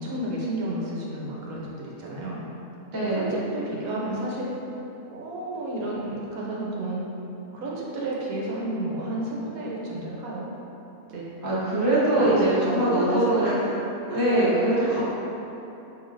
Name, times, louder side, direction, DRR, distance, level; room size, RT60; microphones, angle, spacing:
voice 1, 0.0-2.4 3.1-4.5 5.1-7.0 7.5-10.5 11.1-11.2 12.2-13.7 14.1-14.5 14.7-15.0, right 2 dB, 70° right, -4 dB, 1.0 m, -31 dB
voice 2, 2.9-3.4 11.4-13.5 14.1-15.0, right 1 dB, 20° right, -10 dB, 0.5 m, -22 dB
4.8 x 2.7 x 2.5 m, 3.0 s
omnidirectional pair, 1.6 m